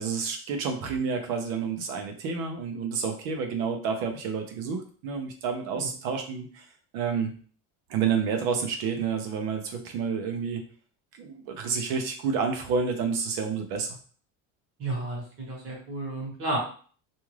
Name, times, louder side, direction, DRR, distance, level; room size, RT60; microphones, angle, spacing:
voice 1, 0.0-6.6 6.9-7.3 7.9-10.6 11.2-13.9, right 6 dB, 75° right, 4 dB, 0.7 m, -29 dB
voice 2, 14.8-16.6, right 2 dB, 35° right, -3 dB, 1.3 m, -32 dB
2.6 x 2.3 x 3.1 m, 0.44 s
cardioid pair, 150°, 37 cm